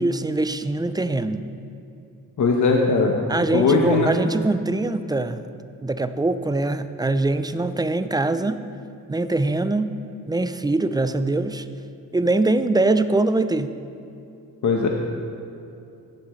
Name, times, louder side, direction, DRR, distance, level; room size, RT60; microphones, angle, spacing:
voice 1, 0.0-1.5 3.3-5.4 5.8-8.6 9.1-9.9 10.3-11.7 12.1-13.8, right 2 dB, 10° right, 11 dB, 0.4 m, -23 dB
voice 2, 2.4-3.1 3.5-4.1 14.6-14.9, left 4 dB, 55° left, 1 dB, 1.1 m, -19 dB
16.0 x 11.0 x 3.1 m, 2.7 s
cardioid pair, 95°, 34 cm